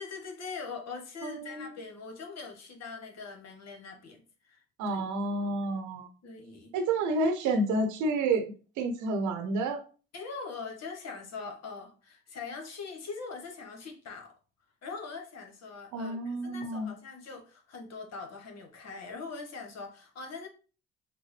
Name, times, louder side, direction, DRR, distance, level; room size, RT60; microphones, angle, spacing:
voice 1, 0.0-5.0 6.2-6.7 10.1-14.3 14.8-20.5, left 4 dB, 55° left, 3 dB, 1.3 m, -42 dB
voice 2, 1.2-1.7 4.8-6.1 6.7-9.8 15.9-16.9, right 2 dB, 70° right, 6 dB, 0.9 m, -30 dB
5.9 x 2.2 x 3.2 m, 0.36 s
hypercardioid pair, 45°, 31 cm